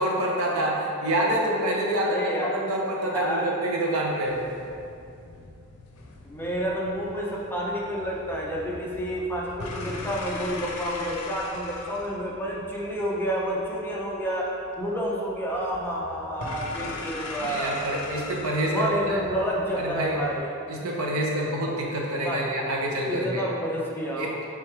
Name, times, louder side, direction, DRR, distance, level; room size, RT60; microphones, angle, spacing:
voice 1, 0.0-4.4 17.4-19.2 19.8-20.2 20.7-23.4 24.2-24.4, right 1 dB, 75° right, -1 dB, 0.7 m, -27 dB
voice 2, 2.0-2.5 3.1-3.5 6.2-14.5 14.8-17.9 18.6-20.5 20.8-20.9 22.2-22.5 23.1-24.4, equal, 10° left, -4 dB, 0.5 m, -29 dB
sound 1, 4.2-20.4, left 3 dB, 85° left, 0.5 m, -41 dB
3.6 x 3.1 x 4.5 m, 2.5 s
head